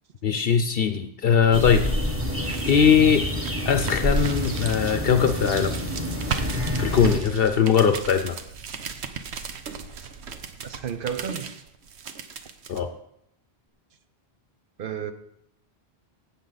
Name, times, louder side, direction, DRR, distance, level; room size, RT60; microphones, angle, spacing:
voice 1, 0.2-1.9 2.7-3.3 3.6-5.8 6.8-8.4 12.7-12.9, left 7 dB, 65° left, 0.8 m, -20 dB
sound 1, 1.5-7.2, left 1 dB, 15° right, 1.3 m, -27 dB
sound 2, 1.9-12.8, right 6 dB, 85° right, 1.1 m, -37 dB
voice 2, 10.6-11.5 14.8-15.1, right 8 dB, 60° right, 0.9 m, -32 dB
16.5 x 7.1 x 4.0 m
omnidirectional pair, 1.1 m